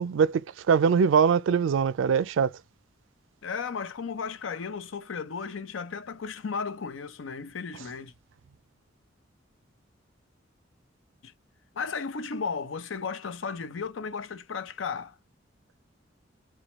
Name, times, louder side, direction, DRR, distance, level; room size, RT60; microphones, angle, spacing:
voice 1, 0.0-2.5, right 6 dB, 85° right, 0.4 m, -22 dB
voice 2, 3.4-8.1 11.2-11.3 11.7-15.2, left 5 dB, 80° left, 0.6 m, -34 dB
4.4 x 2.3 x 3.0 m
head